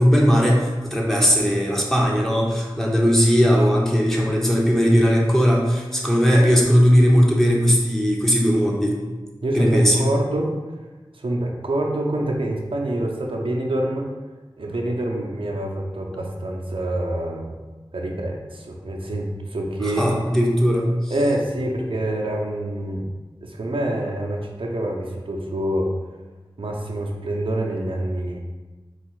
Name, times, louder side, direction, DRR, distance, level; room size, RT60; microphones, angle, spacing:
voice 1, 0.0-9.0 9.5-10.1 19.8-21.1, equal, 5° left, -3 dB, 0.8 m, -18 dB
voice 2, 9.4-10.5 11.1-14.1 14.6-17.6 17.9-20.1 21.1-23.1 23.4-25.9 26.6-28.4, right 1 dB, 85° right, 0 dB, 0.6 m, -26 dB
4.0 x 2.4 x 4.6 m, 1.2 s
wide cardioid pair, 50°, 9 cm